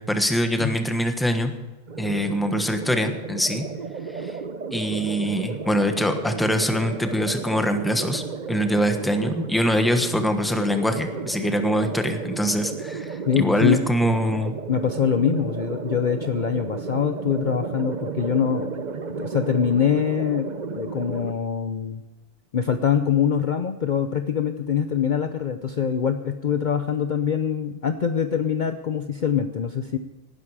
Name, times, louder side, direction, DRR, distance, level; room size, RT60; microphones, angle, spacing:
voice 1, 0.0-1.5 2.0-3.6 4.1-4.3 4.7-8.2 8.5-14.5, equal, ahead, 6 dB, 1.2 m, -23 dB
sound 1, 1.9-21.3, right 5 dB, 45° right, 0.9 m, -33 dB
voice 2, 13.3-13.8 14.7-18.7 19.0-20.5 20.7-22.0 22.5-30.0, left 7 dB, 50° left, 8 dB, 0.8 m, -24 dB
18.5 x 10.5 x 4.9 m, 1.1 s
omnidirectional pair, 1.2 m